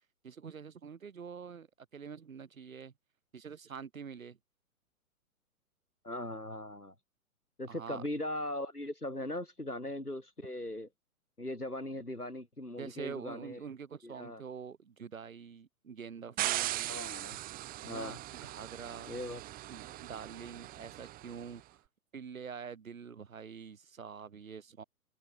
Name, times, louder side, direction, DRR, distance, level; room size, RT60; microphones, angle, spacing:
voice 1, 0.2-2.9 3.3-4.4 7.7-8.0 12.8-16.9 17.8-19.2 19.7-21.8 22.1-24.8, right 6 dB, 65° right, 6.1 m, -46 dB
voice 2, 6.0-6.9 7.6-10.9 11.4-13.6 14.0-14.4 16.9-17.4 17.8-18.2 19.1-19.6, left 1 dB, 90° left, 6.1 m, -39 dB
sound 1, 16.4-21.5, right 16 dB, 20° right, 1.7 m, -39 dB
figure-of-eight pair, 115°, 44 cm